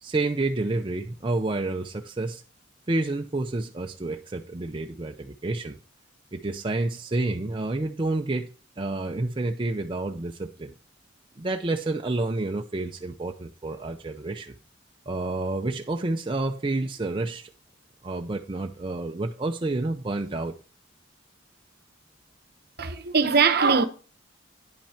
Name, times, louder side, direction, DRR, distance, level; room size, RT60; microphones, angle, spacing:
voice 1, 0.0-2.4 2.9-5.8 6.3-8.5 8.8-10.7 11.4-14.5 15.1-17.5 18.0-20.5, right 2 dB, 25° right, 0.5 m, -29 dB
voice 2, 22.8-23.9, right 5 dB, 55° right, 0.9 m, -21 dB
9.9 x 6.0 x 4.3 m
head